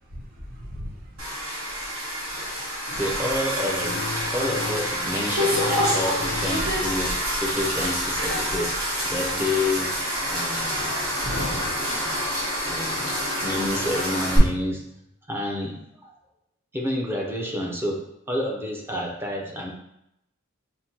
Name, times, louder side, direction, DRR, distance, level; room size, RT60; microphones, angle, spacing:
voice 1, 0.1-3.0 10.7-10.9 11.9-13.1, equal, 45° right, -2 dB, 0.7 m, -44 dB
sound 1, 1.2-14.4, equal, 70° right, 1.4 m, -27 dB
voice 2, 2.9-8.8 9.0-10.0 10.2-10.9 11.2-12.2 12.7-14.8 15.3-16.1 16.7-18.0 18.3-19.7, left 1 dB, 10° right, -1 dB, 0.6 m, -29 dB
sound 2, 3.8-5.2 5.5-7.0, left 3 dB, 45° left, 0.4 m, -35 dB
6.0 x 2.1 x 2.8 m, 0.81 s
head